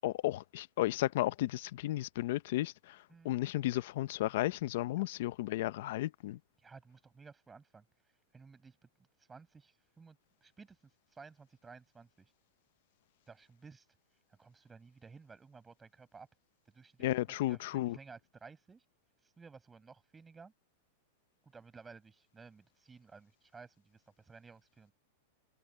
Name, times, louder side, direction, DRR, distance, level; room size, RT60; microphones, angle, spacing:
voice 1, 0.0-6.4 17.0-18.0, left 15 dB, 50° left, 0.7 m, -34 dB
voice 2, 6.6-7.8 8.3-8.8 9.3-10.8 11.1-12.3 13.3-13.8 14.4-16.3 16.7-17.0 17.5-18.8 19.2-20.5 21.4-24.9, right 4 dB, 10° right, 5.1 m, -55 dB
supercardioid pair, 175°, 0 cm